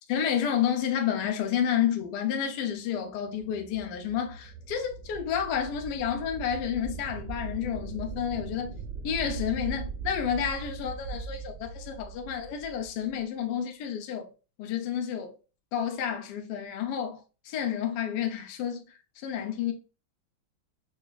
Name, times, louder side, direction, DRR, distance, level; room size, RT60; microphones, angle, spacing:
voice 1, 0.1-8.7 9.0-14.3 14.6-15.4 15.7-18.8 19.2-19.7, left 9 dB, 70° left, 1.1 m, -30 dB
sound 1, 3.1-13.2, right 4 dB, 85° right, 1.5 m, -40 dB
5.0 x 2.3 x 2.2 m
omnidirectional pair, 2.2 m